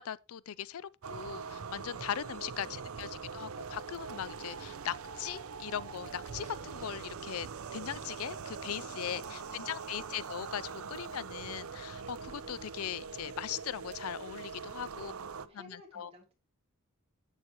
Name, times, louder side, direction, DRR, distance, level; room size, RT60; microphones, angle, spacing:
voice 1, 0.0-15.1 15.6-16.1, left 9 dB, 75° left, 0.4 m, -40 dB
sound 1, 1.0-15.5, right 5 dB, 75° right, 0.6 m, -43 dB
voice 2, 8.7-9.9 14.9-16.3, equal, 30° right, 3.0 m, -57 dB
11.5 x 8.2 x 3.0 m
head